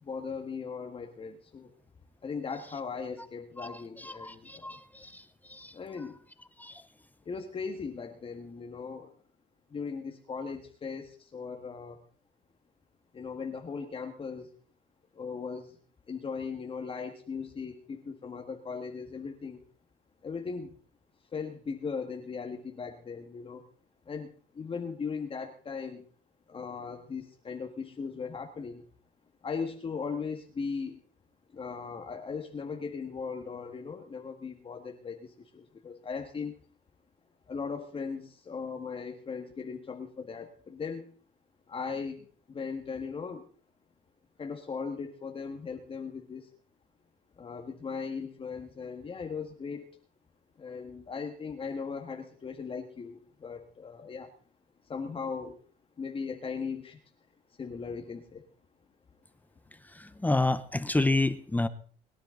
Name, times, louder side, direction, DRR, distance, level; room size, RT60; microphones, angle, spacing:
voice 1, 0.0-1.7 2.2-4.8 5.7-6.1 7.3-9.1 9.7-12.0 13.1-14.5 15.1-15.8 16.1-19.6 20.2-20.7 21.3-23.6 24.1-26.0 26.5-28.9 29.4-31.0 31.5-36.5 37.5-41.1 41.7-43.4 44.4-46.5 47.4-49.9 50.6-54.3 54.9-55.6 56.0-57.0 57.6-58.4, left 5 dB, 35° left, 3 dB, 1.7 m, -38 dB
voice 2, 3.6-5.7 6.6-6.8 59.8-61.7, left 2 dB, 10° left, 13 dB, 0.8 m, -30 dB
22.0 x 10.5 x 3.9 m, 0.43 s
cardioid pair, 110°, 17 cm